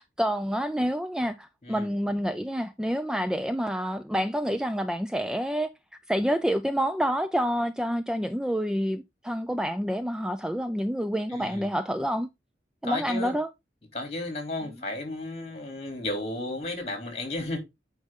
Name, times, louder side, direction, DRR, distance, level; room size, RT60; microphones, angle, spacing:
voice 1, 0.0-5.7 6.1-12.3 12.8-13.5, equal, 5° right, 0.3 m, -28 dB
voice 2, 11.3-11.7 12.8-13.4 13.9-17.6, left 2 dB, 35° left, 3.1 m, -33 dB
9.2 x 5.3 x 3.7 m
head